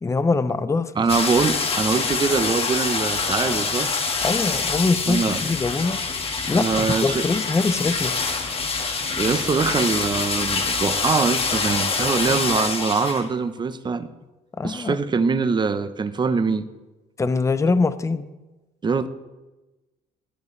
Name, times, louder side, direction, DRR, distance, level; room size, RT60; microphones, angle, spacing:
voice 1, 0.0-1.0 4.2-6.0 6.5-8.2 14.6-15.0 17.2-18.3, left 3 dB, 15° left, 13 dB, 0.7 m, -23 dB
voice 2, 1.0-3.9 5.1-5.4 6.5-7.3 9.2-14.1 14.6-16.7 18.8-19.1, right 4 dB, 25° right, 11 dB, 0.8 m, -23 dB
sound 1, 1.1-13.2 13.6-13.7, left 4 dB, 35° left, 1.7 m, -25 dB
18.0 x 12.0 x 3.3 m, 1.1 s
cardioid pair, 110°, 17 cm